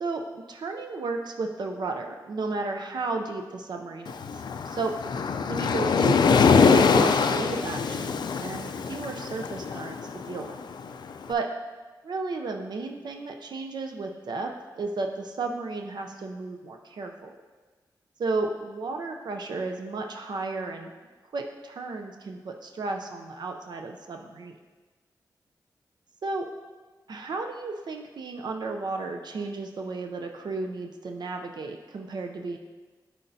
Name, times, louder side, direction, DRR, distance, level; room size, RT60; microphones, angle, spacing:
voice 1, 0.0-4.9 5.5-10.6 11.3-11.5 12.0-17.4 18.2-20.9 21.3-24.6 26.2-26.4 27.1-32.6, right 3 dB, 70° right, 3 dB, 0.5 m, -33 dB
Waves surf, 4.1-11.2, left 5 dB, 70° left, 0.3 m, -23 dB
9.9 x 4.4 x 2.7 m, 1.3 s
cardioid pair, 65°, 8 cm